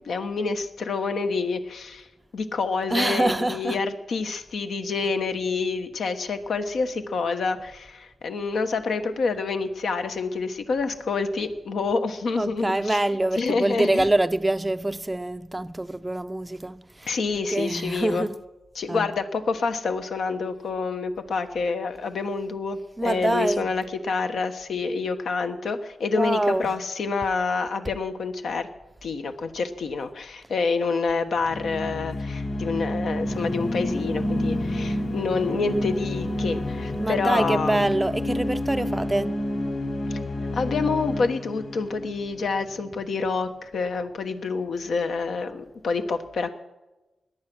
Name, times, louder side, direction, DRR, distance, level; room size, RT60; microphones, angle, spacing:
voice 1, 0.0-2.0 2.3-13.0 13.4-14.0 17.1-18.3 18.8-28.7 29.0-37.9 40.5-46.5, left 4 dB, 80° left, 1.2 m, -27 dB
voice 2, 2.9-3.9 12.4-17.2 17.5-18.4 18.9-19.1 23.0-23.7 26.1-26.8 37.0-39.4, right 1 dB, 15° right, 0.4 m, -25 dB
sound 1, 31.4-42.9, left 1 dB, 50° left, 4.2 m, -29 dB
Singing, 33.2-38.7, left 2 dB, 35° left, 1.4 m, -39 dB
18.0 x 10.5 x 6.2 m
wide cardioid pair, 140°, 0 cm